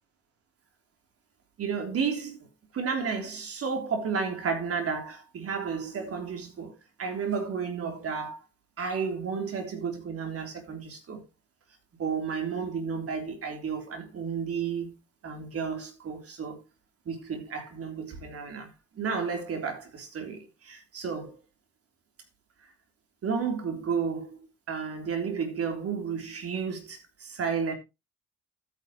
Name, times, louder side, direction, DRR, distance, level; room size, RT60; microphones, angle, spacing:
voice 1, 1.6-2.4 2.7-8.4 8.8-11.2 12.0-15.0 15.2-16.6 17.1-18.7 19.0-21.4 23.2-24.4 24.7-27.7, right 6 dB, 45° right, 3.5 m, -32 dB
13.5 x 9.1 x 3.1 m
hypercardioid pair, 60°, 31 cm